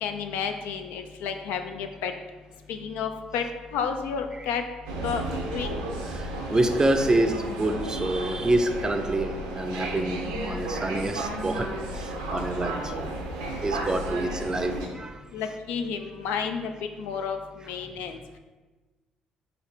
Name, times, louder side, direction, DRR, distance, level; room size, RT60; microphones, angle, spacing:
voice 1, 0.0-2.1 2.7-3.4 3.7-4.6 5.0-5.2 5.5-5.8 15.3-16.7 17.0-18.2, left 6 dB, 70° left, 6 dB, 0.3 m, -31 dB
sound 1, 4.9-14.9, right 1 dB, 85° right, 0.5 m, -33 dB
voice 2, 6.1-11.7 11.9-13.1 13.6-15.2, right 1 dB, 25° right, 5 dB, 0.4 m, -27 dB
4.8 x 2.5 x 3.2 m, 1.2 s
hypercardioid pair, 50°, 3 cm